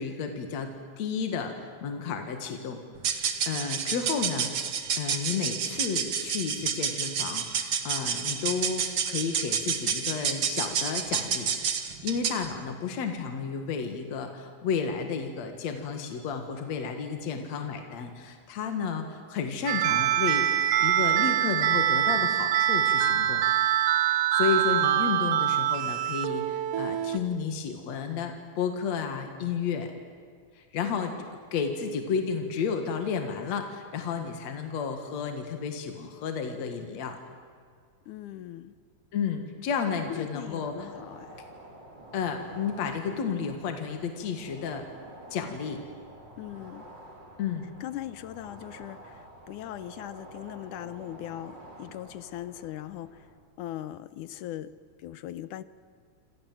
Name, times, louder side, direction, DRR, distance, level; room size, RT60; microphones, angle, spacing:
voice 1, 0.0-2.8 3.1-4.7 5.0-11.5 11.8-23.4 24.1-29.9 30.6-31.1 31.5-37.2 39.1-40.9 42.1-44.8 45.3-45.8 47.4-47.7, left 6 dB, 65° left, 5 dB, 3.0 m, -32 dB
sound 1, 3.0-12.5, right 7 dB, 50° right, 2.2 m, -30 dB
sound 2, 19.7-27.2, right 11 dB, 70° right, 1.4 m, -24 dB
voice 2, 30.9-31.3 38.1-38.8 40.1-41.4 46.4-46.9 47.8-53.2 53.6-54.7 55.0-55.6, left 13 dB, 90° left, 15 dB, 2.4 m, -40 dB
sound 3, 40.3-53.3, right 1 dB, 35° right, 5.0 m, -49 dB
27.5 x 27.5 x 7.7 m, 2.1 s
omnidirectional pair, 3.4 m